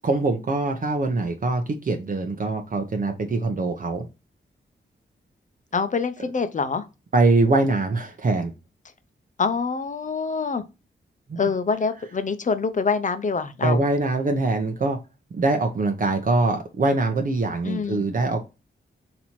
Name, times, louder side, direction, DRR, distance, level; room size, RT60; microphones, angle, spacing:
voice 1, 0.0-4.1 7.1-8.5 11.3-11.4 13.6-15.0 15.3-18.5, right 2 dB, 45° right, 0.8 m, -23 dB
voice 2, 5.7-6.9 9.4-10.6 11.4-13.8 17.6-18.0, left 5 dB, 40° left, 0.7 m, -25 dB
4.2 x 2.9 x 4.3 m
wide cardioid pair, 100°, 20 cm